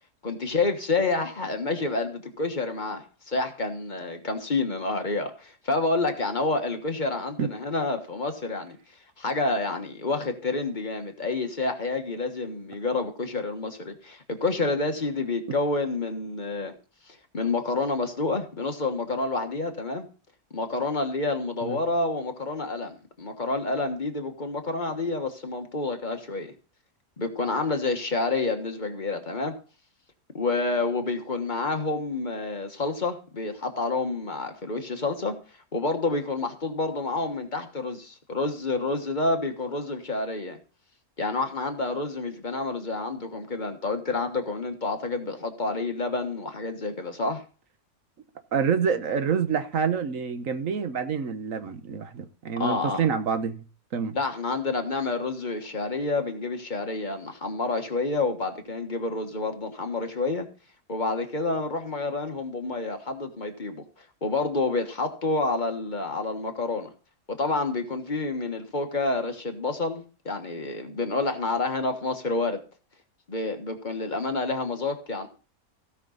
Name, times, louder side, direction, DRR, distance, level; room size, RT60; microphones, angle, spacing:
voice 1, 0.2-8.8 9.2-16.7 17.1-20.1 20.5-26.5 27.2-29.6 30.3-35.3 35.7-40.6 41.2-47.4 52.6-53.0 54.1-60.5 60.9-63.8 64.2-66.9 67.3-72.6 73.3-75.3, left 3 dB, 30° left, 5 dB, 1.4 m, -28 dB
voice 2, 48.5-53.6 53.9-54.2, right 6 dB, 60° right, 9 dB, 1.4 m, -27 dB
16.5 x 6.1 x 4.0 m, 0.36 s
omnidirectional pair, 1.6 m